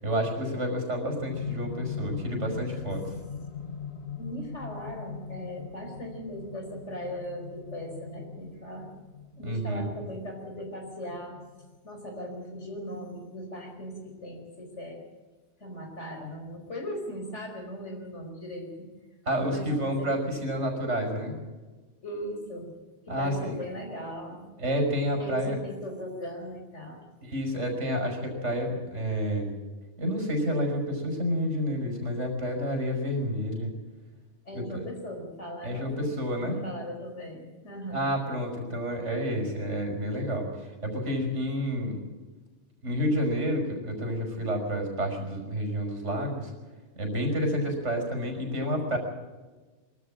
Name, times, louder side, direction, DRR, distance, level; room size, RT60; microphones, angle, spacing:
voice 1, 0.0-3.0 9.4-9.9 19.3-21.4 23.1-23.6 24.6-25.6 27.2-29.5 30.0-33.7 34.5-34.8 35.6-36.6 37.9-42.0 42.8-46.5 47.0-49.0, equal, 80° right, 3 dB, 5.7 m, -29 dB
sound 1, 1.3-13.4 14.4-14.5, left 6 dB, 60° left, 1.4 m, -40 dB
voice 2, 4.2-8.9 9.3-11.4 11.8-15.0 15.6-18.9 19.5-20.1 22.0-22.7 23.0-24.5 25.2-27.1 34.4-36.0 36.4-38.1, equal, 80° left, 2 dB, 5.1 m, -38 dB
23.5 x 13.5 x 8.8 m, 1.3 s
omnidirectional pair, 1.2 m